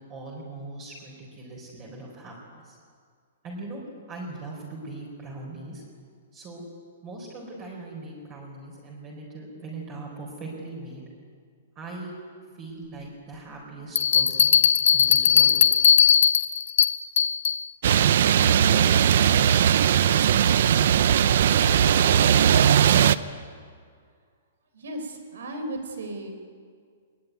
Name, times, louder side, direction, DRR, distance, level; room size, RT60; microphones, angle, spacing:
voice 1, 0.0-2.3 2.6-2.8 3.4-3.8 4.1-5.8 6.3-6.6 7.0-11.0 11.8-12.1 12.6-14.5 14.9-15.6, right 2 dB, 20° right, -2 dB, 4.2 m, -40 dB
Bell, 14.0-17.6, left 8 dB, 70° left, 1.0 m, -19 dB
sound 1, 17.8-23.1, right 9 dB, 55° right, 0.7 m, -19 dB
voice 2, 24.7-26.3, right 1 dB, 90° right, 5 dB, 4.9 m, -35 dB
22.0 x 21.0 x 9.3 m, 2.1 s
hypercardioid pair, 175°, 0 cm